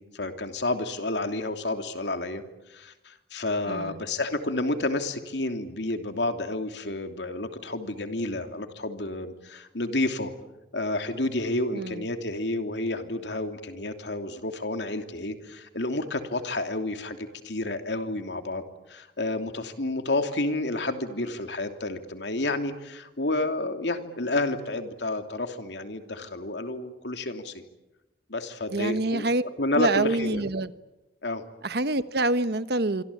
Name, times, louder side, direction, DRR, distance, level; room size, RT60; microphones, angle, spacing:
voice 1, 0.0-2.4 2.7-10.3 10.7-18.6 18.9-27.5 28.3-29.3 29.6-30.4 31.2-31.4, left 2 dB, 85° left, 7 dB, 3.0 m, -30 dB
voice 2, 3.6-4.0 11.7-12.0 28.7-29.4 29.7-30.7 31.6-33.0, right 2 dB, 65° right, 13 dB, 1.2 m, -26 dB
26.0 x 25.5 x 8.6 m, 0.99 s
head